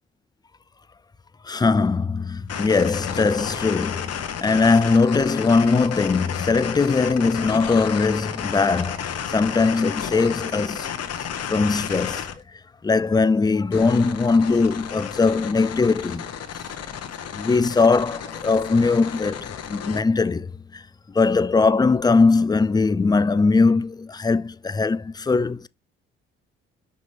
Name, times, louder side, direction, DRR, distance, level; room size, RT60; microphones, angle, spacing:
voice 1, 1.5-10.9 11.5-12.3 12.8-16.3 17.3-20.5 20.7-20.8 21.1-25.7, left 4 dB, 15° left, 0.4 m, -20 dB
sound 1, 2.5-12.4 13.7-20.0, left 8 dB, 55° left, 1.2 m, -32 dB
5.4 x 5.3 x 3.3 m
hypercardioid pair, 55°, 29 cm